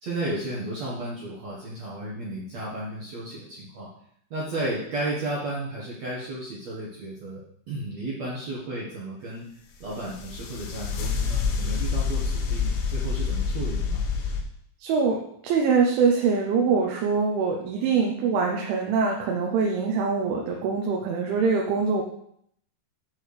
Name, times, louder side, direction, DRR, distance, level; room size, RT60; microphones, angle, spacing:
voice 1, 0.0-3.9 4.3-7.4 7.7-9.5 9.8-14.0, right 1 dB, 55° right, -6 dB, 1.9 m, -33 dB
sound 1, 9.8-14.4, left 5 dB, 80° left, 3.5 m, -27 dB
voice 2, 14.8-22.0, right 5 dB, 80° right, 0 dB, 3.3 m, -24 dB
8.9 x 4.6 x 6.5 m, 0.69 s
omnidirectional pair, 5.4 m